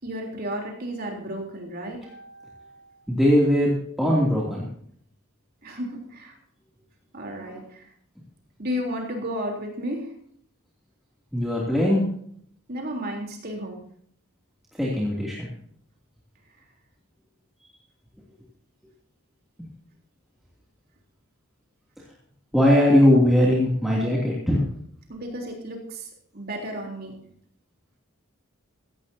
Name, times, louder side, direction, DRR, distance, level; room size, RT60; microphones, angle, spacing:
voice 1, 0.0-2.0 5.6-6.4 7.1-7.9 8.6-10.1 12.7-13.8 25.1-27.2, equal, 45° right, 1 dB, 3.6 m, -33 dB
voice 2, 2.0-2.8 3.1-4.7 7.5-7.6 11.3-12.0 14.7-15.5 22.5-24.7, left 1 dB, ahead, -6 dB, 2.8 m, -21 dB
17.0 x 15.5 x 2.8 m, 0.64 s
head